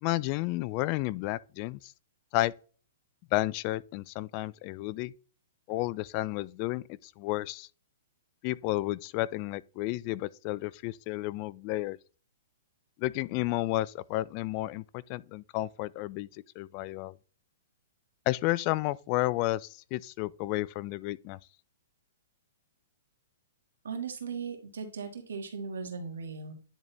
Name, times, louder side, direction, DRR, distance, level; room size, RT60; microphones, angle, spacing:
voice 1, 0.0-1.9 2.3-2.5 3.3-5.1 5.7-7.7 8.4-12.0 13.0-17.1 18.3-21.4, left 18 dB, 40° left, 0.3 m, -32 dB
voice 2, 23.8-26.5, right 5 dB, 85° right, 2.0 m, -38 dB
10.0 x 4.0 x 3.4 m
hypercardioid pair, 135°, 0 cm